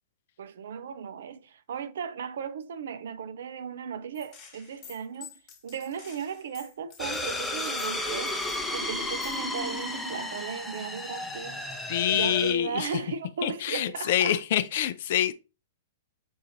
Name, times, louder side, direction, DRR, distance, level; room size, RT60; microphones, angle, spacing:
voice 1, 0.4-5.3 5.6-8.4 8.7-11.7 12.1-14.4, right 7 dB, 65° right, 0.5 m, -36 dB
Gunshot gunfire, 4.1-8.8 9.2-9.6, left 7 dB, 35° left, 1.2 m, -50 dB
sound 1, 7.0-12.5, left 2 dB, 5° left, 0.7 m, -33 dB
voice 2, 11.9-12.9 13.4-15.3, left 11 dB, 55° left, 0.4 m, -26 dB
5.4 x 2.5 x 2.8 m
hypercardioid pair, 110°, 0 cm